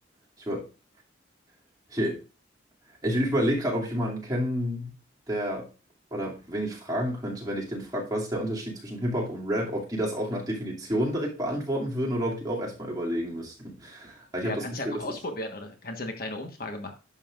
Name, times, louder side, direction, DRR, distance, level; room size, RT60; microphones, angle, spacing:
voice 1, 3.0-4.9 5.3-5.6 6.1-15.0, equal, 20° right, -3 dB, 2.5 m, -29 dB
voice 2, 14.4-16.9, left 1 dB, 50° left, 5 dB, 1.3 m, -35 dB
11.0 x 7.1 x 2.5 m, 0.31 s
head